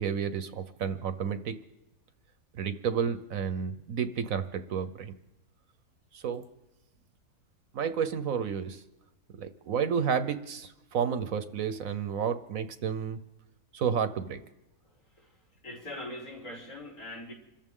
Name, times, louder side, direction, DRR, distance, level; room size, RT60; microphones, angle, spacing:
voice 1, 0.0-1.6 2.6-5.1 6.1-6.4 7.7-8.8 9.4-13.2 13.7-14.4, right 7 dB, 65° right, 11 dB, 1.1 m, -31 dB
voice 2, 14.8-17.3, left 1 dB, 65° left, -2 dB, 5.1 m, -43 dB
27.0 x 14.5 x 3.7 m, 0.95 s
omnidirectional pair, 1.7 m